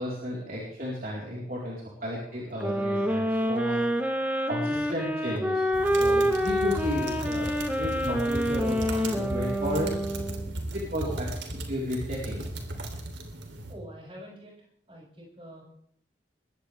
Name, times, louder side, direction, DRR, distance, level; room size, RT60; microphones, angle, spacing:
voice 1, 0.0-3.8 4.5-5.6 5.9-10.0 10.7-11.2 11.7-12.4, equal, 50° right, -5 dB, 4.2 m, -33 dB
sound 1, 2.6-10.6, equal, 10° right, 1.3 m, -27 dB
sound 2, 5.7-13.7, right 1 dB, 80° right, 3.2 m, -36 dB
voice 2, 13.7-14.5 14.9-15.6, right 1 dB, 30° right, -4 dB, 7.9 m, -44 dB
22.0 x 16.5 x 3.5 m, 0.66 s
head